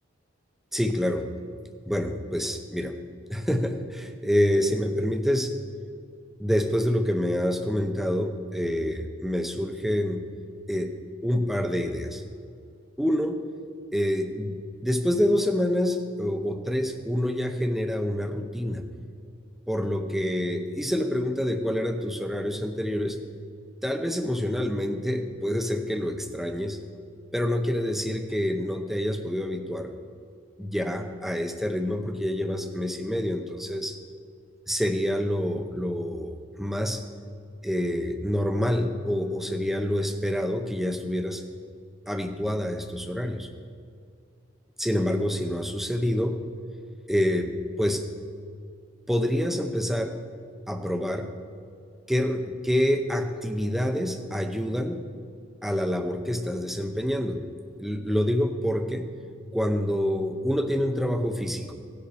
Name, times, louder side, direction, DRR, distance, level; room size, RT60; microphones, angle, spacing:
voice 1, 0.7-1.3 1.8-3.0 3.3-5.5 6.4-10.3 10.7-10.9 11.2-12.2 13.0-13.4 13.9-18.8 19.7-23.2 23.8-26.8 27.3-29.9 30.6-34.0 34.7-37.0 37.6-41.4 42.1-43.5 44.8-46.4 47.1-48.1 49.1-50.2 50.7-51.3 52.1-55.0 55.6-57.4 57.8-59.1 59.5-61.7, equal, ahead, 6 dB, 0.6 m, -27 dB
16.5 x 6.8 x 4.7 m, 2.3 s
head